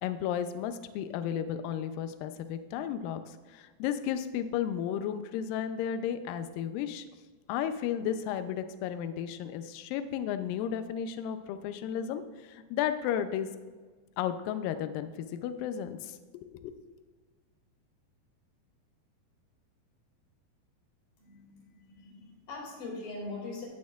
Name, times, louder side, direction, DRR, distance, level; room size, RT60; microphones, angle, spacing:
voice 1, 0.0-7.1 7.5-13.5 14.2-16.9, left 9 dB, 90° left, 10 dB, 1.9 m, -33 dB
voice 2, 21.2-23.7, left 3 dB, 70° left, -2 dB, 3.9 m, -42 dB
16.5 x 6.4 x 2.3 m, 1.4 s
omnidirectional pair, 4.5 m